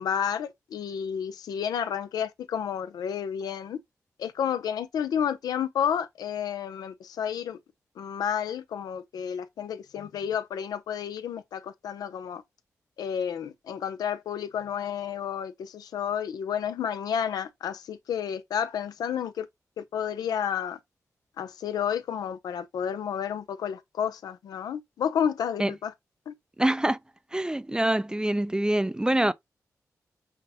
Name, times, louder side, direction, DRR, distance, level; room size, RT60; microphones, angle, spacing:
voice 1, 0.0-3.8 4.2-7.6 8.0-12.4 13.0-19.5 19.8-20.8 21.4-25.9 26.3-26.4, left 8 dB, 85° left, 0.5 m, -31 dB
voice 2, 26.6-27.0 27.3-29.3, right 1 dB, 10° right, 0.4 m, -25 dB
5.7 x 2.2 x 2.7 m
supercardioid pair, 45°, 6 cm